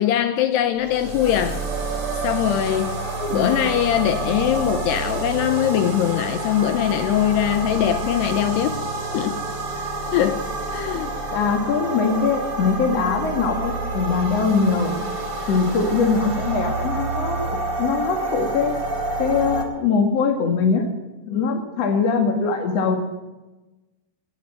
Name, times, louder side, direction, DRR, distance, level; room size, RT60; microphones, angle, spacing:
voice 1, 0.0-1.6 2.2-3.0 3.3-8.8 9.1-9.4 10.1-10.4 10.7-11.1, left 11 dB, 85° left, 2.5 m, -21 dB
sound 1, 0.7-19.6, right 3 dB, 30° right, 2.9 m, -28 dB
voice 2, 3.2-3.5 10.9-11.0 11.3-15.0 15.5-18.8 19.2-20.8 21.2-23.0, left 5 dB, 60° left, 1.7 m, -22 dB
17.0 x 9.1 x 8.8 m
omnidirectional pair, 5.5 m